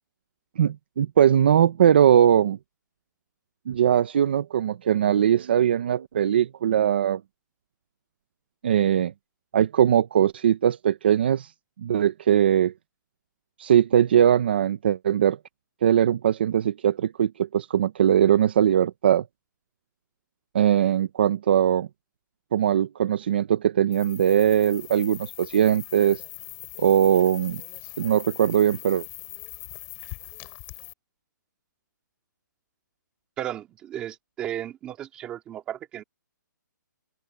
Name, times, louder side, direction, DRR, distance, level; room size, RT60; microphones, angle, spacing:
voice 1, 0.6-2.6 3.7-7.2 8.6-9.1 9.5-11.5 11.8-12.7 13.6-15.4 15.8-19.2 20.5-21.9 22.5-26.2 26.8-27.6 28.0-29.1, right 9 dB, 30° right, 0.8 m, -20 dB
sound 1, 23.9-30.9, left 34 dB, 15° left, 6.7 m, -41 dB
voice 2, 33.4-36.0, right 11 dB, 10° right, 2.2 m, -34 dB
open air
hypercardioid pair, 180°, 11 cm